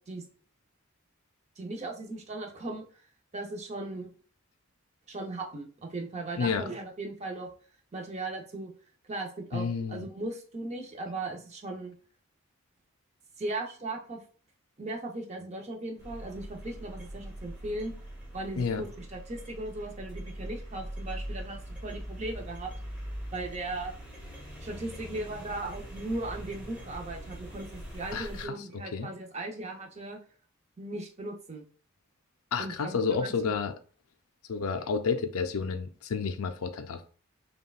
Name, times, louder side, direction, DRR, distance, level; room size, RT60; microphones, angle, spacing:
voice 1, 1.6-2.8 3.3-4.1 5.1-7.5 7.9-8.7 9.1-11.9 13.4-14.2 14.8-17.9 18.3-22.7 23.3-23.9 24.6-30.2 30.8-31.7 32.6-33.5, right 2 dB, 30° right, 0.7 m, -37 dB
voice 2, 6.4-6.7 9.5-10.1 18.6-18.8 28.1-29.1 32.5-33.8 34.5-37.1, left 5 dB, 85° left, 0.5 m, -31 dB
sound 1, 16.0-28.4, equal, 5° right, 1.4 m, -42 dB
5.6 x 2.3 x 2.3 m
head